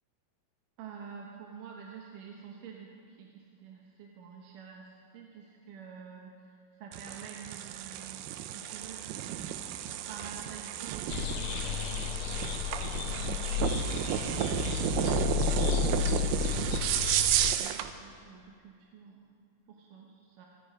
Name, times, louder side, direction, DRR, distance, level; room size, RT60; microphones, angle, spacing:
voice 1, 0.8-9.8 10.1-12.7 13.1-14.6 15.3-16.9 17.6-19.2 19.7-20.5, right 6 dB, 70° right, -1 dB, 2.4 m, -48 dB
sound 1, 6.9-17.9, right 11 dB, 85° right, 2.6 m, -32 dB
sound 2, 11.1-17.6, left 11 dB, 85° left, 1.9 m, -32 dB
24.5 x 10.0 x 5.1 m, 2.3 s
omnidirectional pair, 4.4 m